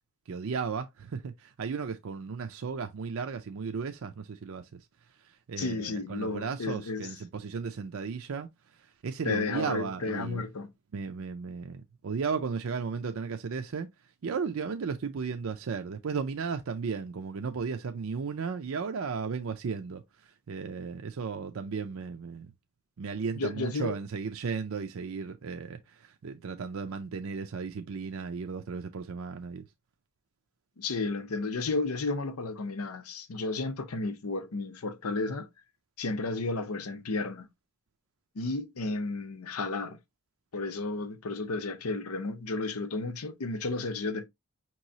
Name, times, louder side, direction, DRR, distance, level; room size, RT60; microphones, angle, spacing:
voice 1, 0.3-4.6 5.5-8.5 9.0-10.4 10.9-13.9 14.2-20.0 20.5-22.5 23.0-29.7, right 5 dB, 70° right, 0.5 m, -35 dB
voice 2, 5.6-7.1 9.2-10.7 23.4-24.0 30.8-35.5 36.0-37.5 38.3-40.0 40.5-44.2, left 3 dB, 85° left, 0.7 m, -32 dB
5.4 x 3.0 x 2.7 m
head